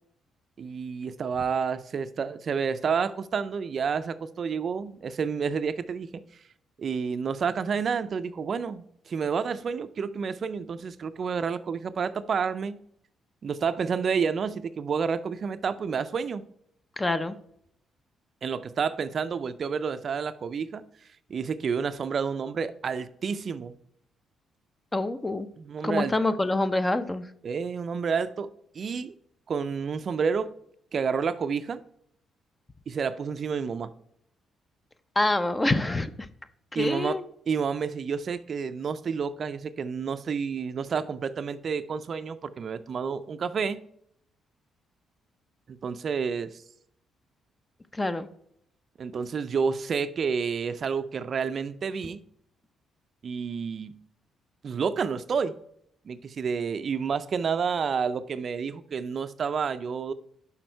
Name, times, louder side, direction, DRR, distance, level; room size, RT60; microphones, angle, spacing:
voice 1, 0.6-6.4 6.8-12.8 13.4-16.4 18.4-20.8 21.3-23.7 25.6-26.2 27.4-28.5 28.7-29.1 29.5-30.5 30.9-31.8 32.9-33.9 36.8-37.2 37.5-43.8 45.7-46.6 49.0-52.2 53.2-54.0 54.6-55.6 56.1-60.1, right 6 dB, 50° right, 0.4 m, -29 dB
voice 2, 17.0-17.4 24.9-25.5 25.8-27.3 35.2-36.1 36.7-37.2 47.9-48.3, left 2 dB, 20° left, 0.6 m, -26 dB
6.1 x 5.6 x 4.4 m
cardioid pair, 90°, 0 cm